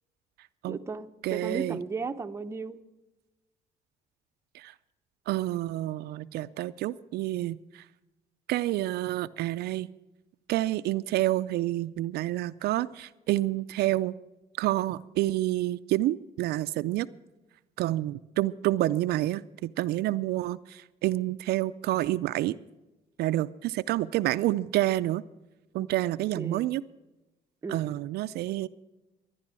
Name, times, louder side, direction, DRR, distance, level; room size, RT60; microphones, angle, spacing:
voice 1, 0.7-2.8 25.8-25.9 26.4-26.7 27.6-28.0, right 4 dB, 15° right, 7 dB, 0.7 m, -35 dB
voice 2, 1.2-1.8 4.5-4.7 5.3-7.8 8.5-9.9 10.5-14.2 14.6-17.1 17.8-22.6 23.2-25.2 25.7-26.8 27.7-28.7, right 15 dB, 70° right, 13 dB, 0.4 m, -28 dB
14.0 x 10.5 x 7.5 m, 1.0 s
cardioid pair, 110°, 17 cm